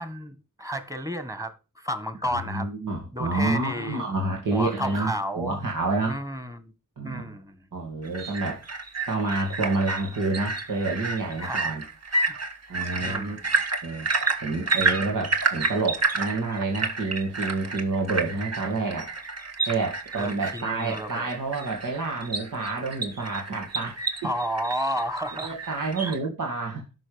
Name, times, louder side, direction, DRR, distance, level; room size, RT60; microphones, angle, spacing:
voice 1, 0.0-2.7 3.1-4.0 4.5-5.6 6.1-6.7 7.0-7.6 11.4-11.7 12.3-12.4 12.8-13.5 20.2-21.3 24.2-25.6 26.0-26.2, equal, 10° right, 1.7 m, -32 dB
voice 2, 2.2-6.2 7.0-7.4 7.7-8.6 9.1-11.8 12.7-13.4 13.8-14.1 14.4-19.1 19.7-24.3 25.4-26.9, right 3 dB, 80° right, 2.2 m, -28 dB
sound 1, 8.0-26.2, right 3 dB, 55° right, 1.9 m, -30 dB
13.0 x 6.1 x 5.2 m
wide cardioid pair, 90°, 31 cm